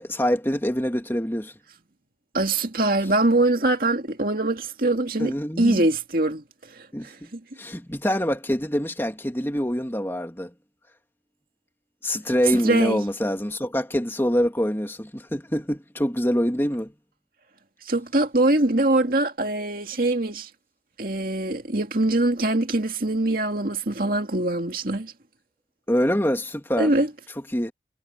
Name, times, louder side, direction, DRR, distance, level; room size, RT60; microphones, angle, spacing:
voice 1, 0.0-1.5 5.2-5.8 6.9-7.3 7.6-10.5 12.0-16.9 25.9-26.9 27.5-27.7, equal, 15° left, 2.7 m, -25 dB
voice 2, 2.3-6.4 6.8-7.4 12.6-13.0 17.9-20.5 21.0-25.1 26.8-27.1, right 2 dB, 50° right, 2.3 m, -23 dB
head